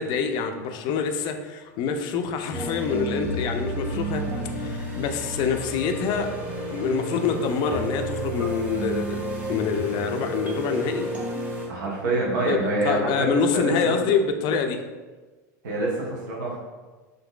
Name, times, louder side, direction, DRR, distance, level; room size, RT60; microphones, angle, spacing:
voice 1, 0.0-6.3 6.7-11.1 12.4-14.8, left 6 dB, 50° left, 6 dB, 0.4 m, -26 dB
sound 1, 2.5-11.7, right 1 dB, 15° right, 0.9 m, -31 dB
voice 2, 11.7-14.0 15.6-16.6, right 2 dB, 80° right, -3 dB, 0.9 m, -26 dB
3.8 x 2.6 x 2.3 m, 1.3 s
hypercardioid pair, 105°, 10 cm